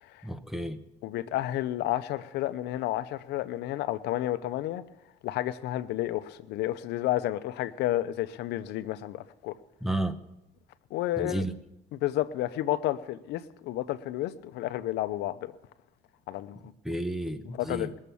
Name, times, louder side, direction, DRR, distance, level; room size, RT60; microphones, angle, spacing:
voice 1, 0.2-0.8 9.8-10.2 11.2-11.5 16.8-17.9, right 1 dB, ahead, 0.8 m, -32 dB
voice 2, 1.0-4.8 5.2-9.5 10.9-11.4 11.9-15.5 16.3-16.7 17.5-17.9, left 14 dB, 85° left, 0.7 m, -31 dB
21.5 x 7.4 x 6.9 m
cardioid pair, 110°, 17 cm